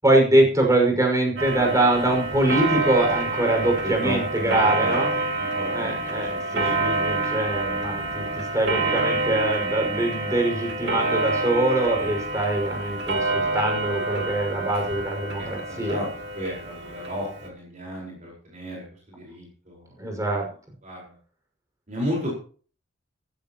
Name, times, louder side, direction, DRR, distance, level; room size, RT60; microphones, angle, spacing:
voice 1, 0.0-5.1 5.7-16.0 20.0-20.4, right 1 dB, 15° right, 1 dB, 5.8 m, -23 dB
Clock, 1.4-17.5, right 2 dB, 65° right, 2.8 m, -27 dB
voice 2, 3.8-7.6 15.4-16.1 16.3-19.9 20.8-21.1 21.9-22.3, equal, 40° right, -3 dB, 4.9 m, -34 dB
15.0 x 15.0 x 3.0 m, 0.41 s
head